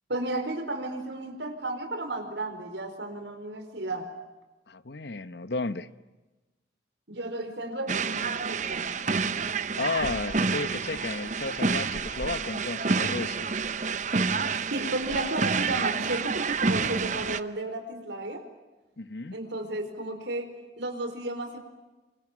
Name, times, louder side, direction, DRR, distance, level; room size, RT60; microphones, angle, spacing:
voice 1, 0.1-4.1 7.1-8.9 14.7-18.4 19.3-20.5 20.8-21.6, right 2 dB, 75° right, 4.8 m, -33 dB
voice 2, 4.7-5.9 9.8-13.5 19.0-19.4, left 3 dB, 65° left, 1.0 m, -33 dB
sound 1, 7.9-17.4, right 4 dB, 40° right, 0.8 m, -28 dB
29.0 x 25.5 x 7.5 m
head